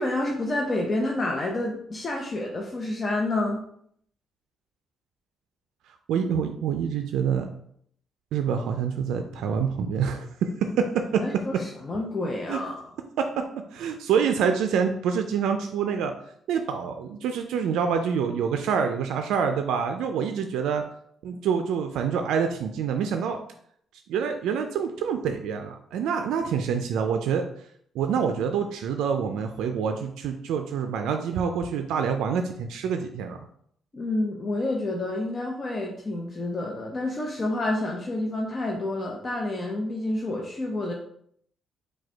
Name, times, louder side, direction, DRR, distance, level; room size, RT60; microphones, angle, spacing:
voice 1, 0.0-3.6 11.2-12.8 33.9-40.9, left 2 dB, 35° left, 0 dB, 0.6 m, -29 dB
voice 2, 6.1-7.5 8.3-11.2 12.5-12.6 13.2-13.4 13.7-16.1 16.5-20.8 21.2-23.4 24.1-27.4 27.9-33.4, right 7 dB, 85° right, 6 dB, 0.3 m, -26 dB
4.8 x 2.2 x 4.4 m, 0.67 s
cardioid pair, 90°, 0 cm